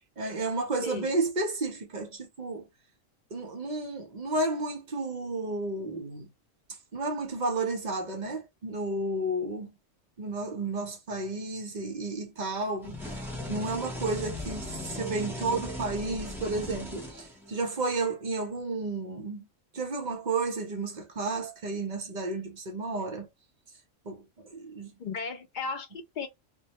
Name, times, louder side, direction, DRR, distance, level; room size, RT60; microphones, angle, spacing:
voice 1, 0.2-2.7 3.3-6.3 6.9-9.7 10.2-13.2 13.5-19.5 19.7-23.3 24.1-24.9, right 3 dB, 50° right, 0.5 m, -32 dB
sound 1, 12.8-17.7, left 1 dB, 5° right, 0.4 m, -38 dB
voice 2, 25.0-26.3, left 4 dB, 60° left, 0.5 m, -35 dB
2.2 x 2.0 x 2.8 m
omnidirectional pair, 1.3 m